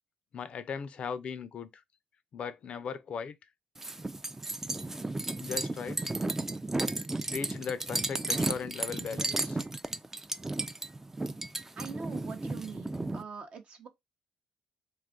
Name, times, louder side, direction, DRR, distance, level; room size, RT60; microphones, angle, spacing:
voice 1, 0.3-1.8 2.3-3.4 5.4-6.0 7.3-9.6, left 6 dB, 55° left, 0.4 m, -38 dB
sound 1, 3.8-13.2, right 2 dB, 15° right, 0.3 m, -34 dB
voice 2, 11.8-13.9, right 5 dB, 55° right, 0.7 m, -43 dB
2.4 x 2.4 x 3.6 m
supercardioid pair, 65°, 2 cm